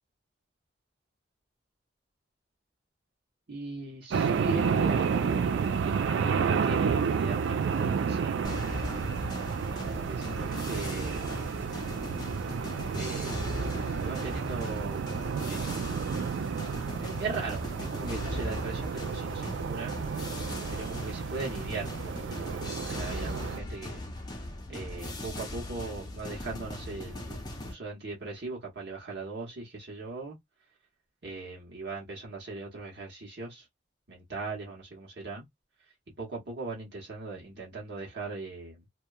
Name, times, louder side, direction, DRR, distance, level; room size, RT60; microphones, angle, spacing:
voice 1, 3.5-5.5 5.8-8.6 9.6-11.8 12.9-13.4 13.9-15.0 15.4-15.8 17.0-19.9 20.7-22.3 22.8-24.0 24.7-30.4 31.2-33.7 34.1-35.4 36.2-38.8, right 3 dB, 60° right, 0.9 m, -39 dB
sound 1, 4.1-23.6, right 6 dB, 80° right, 0.3 m, -31 dB
sound 2, 8.4-27.7, left 1 dB, 20° left, 0.5 m, -39 dB
2.8 x 2.2 x 2.2 m
head